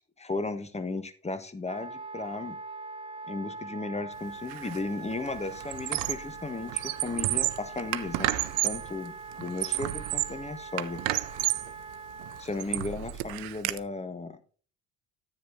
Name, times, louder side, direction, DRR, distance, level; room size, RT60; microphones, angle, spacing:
voice 1, 0.0-2.6 3.3-8.3 8.6-11.0 12.4-14.4, left 3 dB, 15° left, 11 dB, 1.3 m, -35 dB
Wind instrument woodwind instrument, 1.6-12.5, right 3 dB, 15° right, 0.7 m, -42 dB
Squeak, 4.5-4.8 5.1-6.3 6.6-8.9 9.4-10.4 10.8-11.7 12.2-13.8, right 17 dB, 75° right, 0.6 m, -31 dB
10.0 x 9.7 x 2.6 m, 0.39 s
hypercardioid pair, 55°, 37 cm